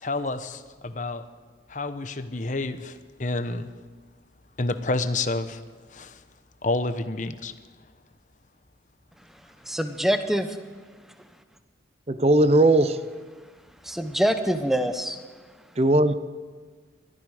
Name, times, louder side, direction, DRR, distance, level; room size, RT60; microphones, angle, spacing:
voice 1, 0.0-1.2 1.7-3.7 4.6-5.6 5.9-6.2 6.6-7.5, left 2 dB, 40° left, 11 dB, 0.8 m, -29 dB
voice 2, 9.7-10.6 13.8-15.2, equal, ahead, 8 dB, 0.9 m, -25 dB
voice 3, 12.1-13.0 15.8-16.1, right 1 dB, 35° right, 12 dB, 0.6 m, -18 dB
21.5 x 13.5 x 4.9 m, 1.5 s
head